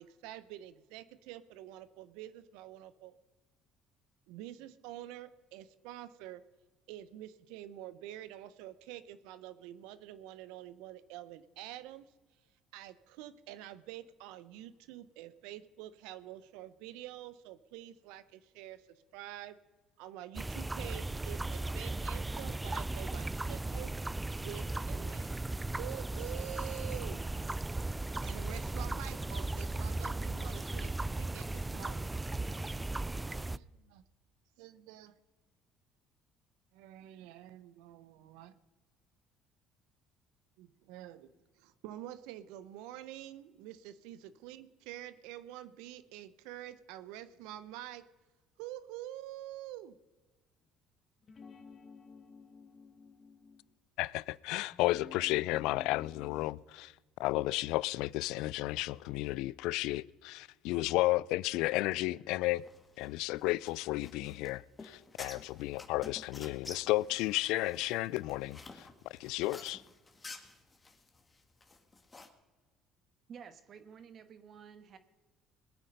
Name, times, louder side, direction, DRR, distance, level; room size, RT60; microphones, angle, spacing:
voice 1, 0.0-3.2 4.3-6.4 6.9-12.1 12.7-19.6 20.0-23.9 24.4-25.3 25.8-27.3 28.2-32.1 33.2-34.0 34.6-35.2 36.7-38.5 40.6-48.1 48.6-50.0, right 13 dB, 80° right, 0.8 m, -47 dB
sound 1, 20.3-33.6, right 2 dB, 15° right, 0.4 m, -36 dB
sound 2, 51.2-53.7 54.7-56.5, left 5 dB, 45° left, 2.0 m, -52 dB
voice 2, 54.0-56.9 57.2-62.6 63.0-68.6 69.2-69.8, left 19 dB, 75° left, 0.3 m, -33 dB
sound 3, 62.6-72.3, left 3 dB, 25° left, 2.1 m, -51 dB
voice 3, 73.3-75.0, right 7 dB, 55° right, 1.5 m, -51 dB
20.5 x 9.1 x 5.4 m
supercardioid pair, 70°, 0 cm